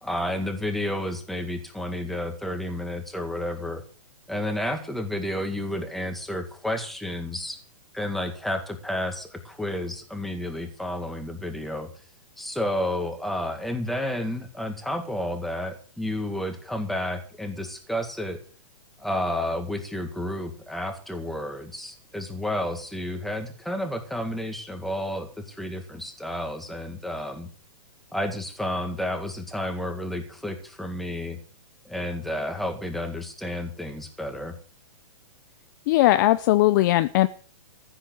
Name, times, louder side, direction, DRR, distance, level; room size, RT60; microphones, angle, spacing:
voice 1, 0.0-3.8 4.3-7.6 7.9-11.9 12.4-18.4 19.0-27.5 28.1-31.4 31.8-34.5, left 1 dB, ahead, 5 dB, 2.1 m, -31 dB
voice 2, 35.9-37.3, left 16 dB, 35° left, 13 dB, 0.6 m, -19 dB
15.0 x 8.1 x 8.1 m, 0.42 s
hypercardioid pair, 155°, 18 cm